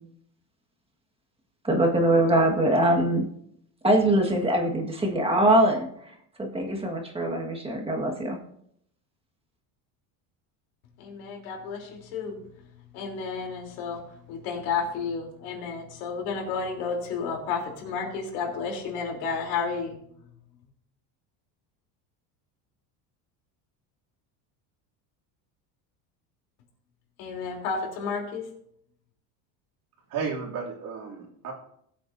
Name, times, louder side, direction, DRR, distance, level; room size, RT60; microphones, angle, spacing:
voice 1, 1.6-3.3 3.8-5.9 6.4-8.4, right 1 dB, 15° right, 1 dB, 1.6 m, -22 dB
voice 2, 11.0-12.4 12.9-14.0 14.3-20.0 27.2-28.5, left 5 dB, 85° left, 0 dB, 3.5 m, -31 dB
voice 3, 30.1-31.5, right 5 dB, 50° right, -1 dB, 2.9 m, -33 dB
19.5 x 8.3 x 2.7 m, 0.71 s
cardioid pair, 140°, 43 cm